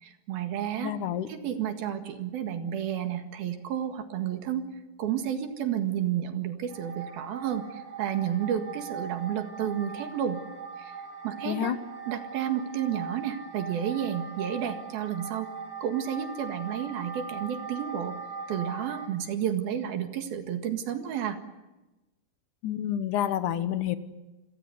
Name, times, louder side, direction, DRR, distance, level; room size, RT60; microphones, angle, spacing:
voice 1, 0.0-0.9 1.3-4.6 5.0-7.7 8.0-10.4 10.8-10.9 11.2-11.7 12.1-15.5 15.8-18.2 18.5-21.4, right 9 dB, 70° right, 7 dB, 3.5 m, -31 dB
voice 2, 0.8-1.3 11.5-11.8 22.6-24.0, left 10 dB, 65° left, 11 dB, 2.1 m, -28 dB
sound 1, 6.7-19.1, right 5 dB, 45° right, 6.5 m, -40 dB
28.5 x 21.5 x 8.1 m, 1.1 s
omnidirectional pair, 4.7 m